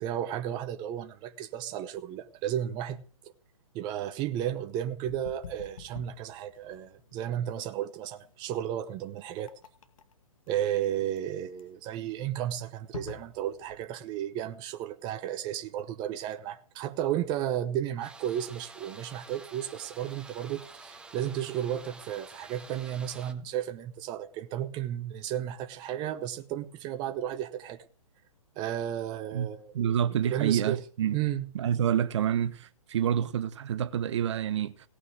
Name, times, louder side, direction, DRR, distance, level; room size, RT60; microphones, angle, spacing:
voice 1, 0.0-3.3 3.7-9.5 10.5-27.8 28.6-29.9 30.3-30.8 31.1-31.4, right 11 dB, 25° right, 0.9 m, -33 dB
sound 1, 5.1-13.9, left 6 dB, 65° left, 2.0 m, -47 dB
sound 2, 18.0-23.3, right 3 dB, 5° right, 1.2 m, -49 dB
voice 2, 29.7-31.2 31.5-34.7, right 9 dB, 50° right, 1.3 m, -28 dB
18.0 x 6.3 x 9.3 m
hypercardioid pair, 135°, 18 cm